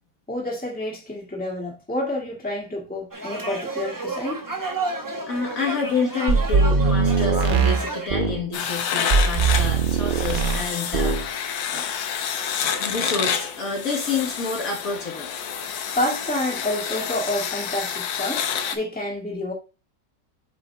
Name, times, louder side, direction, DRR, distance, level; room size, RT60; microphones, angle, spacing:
voice 1, 0.3-4.4 15.9-19.5, left 1 dB, 5° left, 1.8 m, -29 dB
sound 1, 3.1-8.1, right 3 dB, 25° right, 0.4 m, -31 dB
voice 2, 5.3-11.9 12.8-15.3, left 4 dB, 55° left, 1.6 m, -28 dB
sound 2, 6.3-8.4 9.1-10.7 10.9-11.3, right 4 dB, 90° right, 0.4 m, -20 dB
sound 3, 8.5-18.8, left 8 dB, 90° left, 1.5 m, -28 dB
7.9 x 5.2 x 2.3 m
omnidirectional pair, 1.9 m